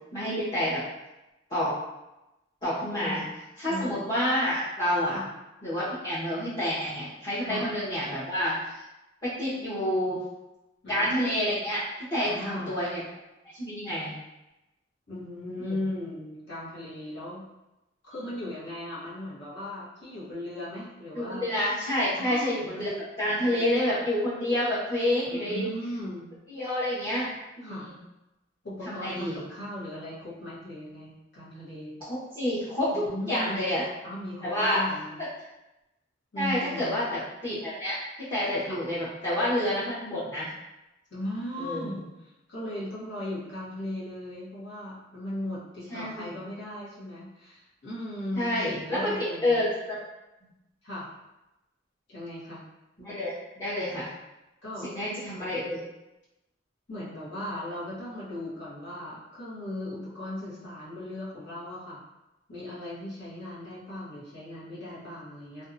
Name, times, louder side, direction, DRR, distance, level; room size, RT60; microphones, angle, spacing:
voice 1, 0.1-0.8 1.5-1.7 2.6-3.2 3.6-5.2 5.6-8.8 9.2-10.2 10.9-11.8 12.1-13.0 13.6-14.2 15.6-15.8 21.1-25.7 26.5-27.3 27.6-27.9 28.8-29.4 32.1-33.8 34.4-34.8 36.4-38.0 38.3-40.5 41.6-41.9 45.9-46.4 48.3-50.0 53.0-54.1 54.8-55.8, left 1 dB, 25° left, -14 dB, 0.9 m, -28 dB
voice 2, 12.2-12.7 15.1-17.4 18.0-21.5 22.2-22.5 23.2-24.0 25.3-26.3 27.6-27.8 28.6-32.0 32.9-33.6 34.0-35.2 36.3-37.0 38.6-38.8 41.1-49.6 50.8-51.1 52.1-52.6 54.0-54.1 54.6-54.9 56.9-62.0 62.5-65.6, left 1 dB, 65° left, -8 dB, 1.0 m, -37 dB
2.6 x 2.2 x 2.6 m, 0.95 s
head